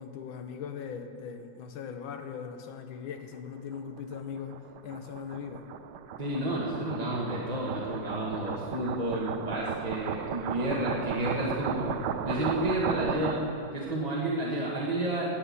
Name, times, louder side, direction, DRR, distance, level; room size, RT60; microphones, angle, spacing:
voice 1, 0.0-4.6 4.8-5.7, left 7 dB, 75° left, 7 dB, 1.7 m, -39 dB
sound 1, 3.7-13.7, right 8 dB, 75° right, 1.2 m, -35 dB
voice 2, 6.2-12.0 12.2-13.4 13.7-15.3, right 1 dB, 20° right, -5 dB, 1.3 m, -30 dB
18.0 x 6.9 x 7.0 m, 2.5 s
omnidirectional pair, 2.2 m